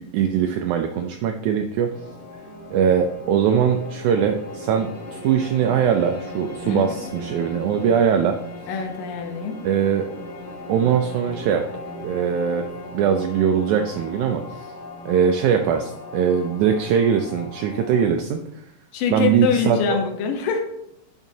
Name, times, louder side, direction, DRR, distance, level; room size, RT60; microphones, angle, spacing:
voice 1, 0.0-1.9 2.7-8.4 9.6-10.1 10.7-11.6 12.0-12.6 12.9-14.6 15.0-18.4 19.1-20.0, right 8 dB, 85° right, 5 dB, 1.7 m, -21 dB
sound 1, 1.9-18.0, left 2 dB, 55° left, 1.4 m, -38 dB
voice 2, 8.7-9.6 18.9-20.6, left 6 dB, 80° left, 4 dB, 2.5 m, -24 dB
9.1 x 6.0 x 2.7 m, 0.80 s
omnidirectional pair, 4.0 m